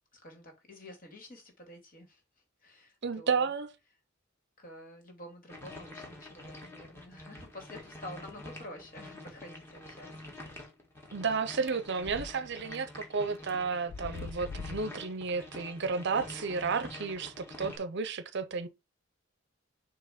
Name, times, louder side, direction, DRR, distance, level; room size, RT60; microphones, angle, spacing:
voice 1, 0.1-2.2 2.6-3.5 4.6-10.5, left 1 dB, 45° left, 2.5 m, -49 dB
voice 2, 3.0-3.7 11.1-18.7, right 5 dB, 60° right, 0.6 m, -32 dB
sound 1, 5.5-17.8, left 1 dB, 10° left, 1.8 m, -47 dB
sound 2, 11.7-12.3 12.7-12.8 13.5-13.6 13.9-15.0, left 5 dB, 60° left, 0.4 m, -41 dB
6.8 x 3.0 x 5.1 m
head